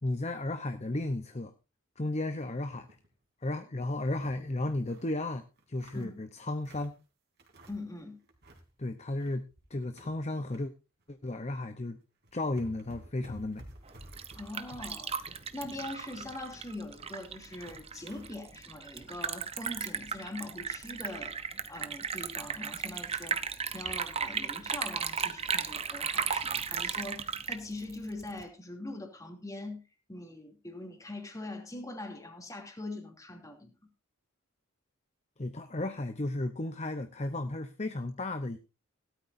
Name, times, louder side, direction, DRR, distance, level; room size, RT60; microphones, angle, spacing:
voice 1, 0.0-1.5 2.0-2.9 3.4-6.9 8.8-10.7 11.1-12.0 12.3-13.6 35.4-38.6, left 2 dB, 30° left, 0.8 m, -34 dB
sound 1, 2.6-3.1 3.5-3.6 3.9-5.1 5.6-7.0 7.4-8.0 8.2-8.7 9.0-10.6 11.0-11.2 11.9-12.0 12.2-18.3, right 1 dB, 50° right, 3.3 m, -53 dB
voice 2, 7.7-8.2 14.4-21.4 21.7-29.8 30.1-33.7, left 2 dB, 15° left, 2.8 m, -42 dB
Liquid, 13.9-28.4, right 6 dB, 30° right, 0.8 m, -36 dB
17.5 x 12.5 x 2.7 m
head